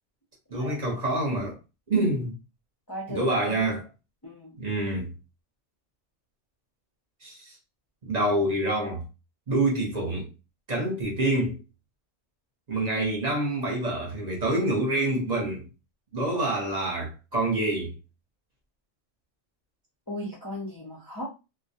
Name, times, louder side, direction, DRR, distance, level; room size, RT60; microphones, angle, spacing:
voice 1, 0.5-1.6 1.9-2.3 3.1-3.8 4.6-5.1 7.2-7.5 8.0-9.0 9.5-10.3 10.7-11.6 12.7-15.7 16.1-17.9, right 1 dB, 40° right, 0.8 m, -26 dB
voice 2, 2.9-3.6 4.2-4.6 20.1-21.2, left 1 dB, 30° left, 0.4 m, -36 dB
2.3 x 2.0 x 2.7 m
omnidirectional pair, 1.2 m